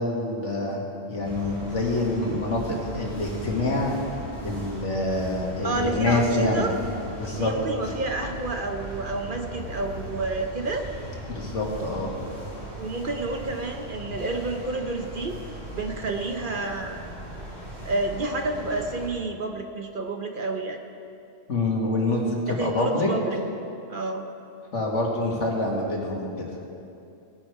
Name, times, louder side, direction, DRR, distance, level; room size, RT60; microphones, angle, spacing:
voice 1, 0.0-4.0 4.4-6.7 7.2-7.5 11.3-12.1 21.5-23.1 24.7-26.5, left 2 dB, 70° left, -1 dB, 2.2 m, -26 dB
sound 1, 1.2-19.1, equal, 25° right, 3.5 m, -38 dB
voice 2, 5.6-6.8 7.2-10.8 12.8-17.0 17.8-20.8 22.5-23.4 23.9-24.2, right 2 dB, 50° right, 4 dB, 0.9 m, -30 dB
18.0 x 9.9 x 4.7 m, 2.7 s
omnidirectional pair, 1.3 m